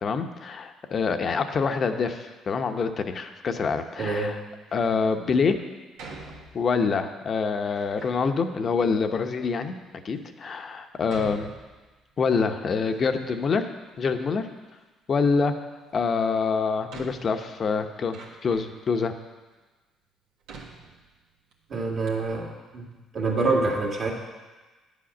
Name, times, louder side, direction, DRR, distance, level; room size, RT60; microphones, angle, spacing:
voice 1, 0.0-4.4 4.7-5.6 6.5-9.8 10.0-11.5 12.2-14.5 15.1-15.5 15.9-19.1, left 5 dB, 45° left, 7 dB, 0.8 m, -26 dB
voice 2, 4.0-4.4 21.7-22.9 23.1-24.1, right 3 dB, 50° right, -1 dB, 2.1 m, -26 dB
Door, 4.6-5.1 6.0-6.9 7.6-8.2 9.0-9.1 9.8-9.9 11.1-12.2 12.6-13.6 13.9-14.8 16.1-16.2 16.9-18.9 19.5-19.6 20.4-21.5 21.8-21.9 22.1-22.3, right 3 dB, 85° right, 1.4 m, -46 dB
9.9 x 5.1 x 7.1 m, 1.2 s
supercardioid pair, 80°, 0 cm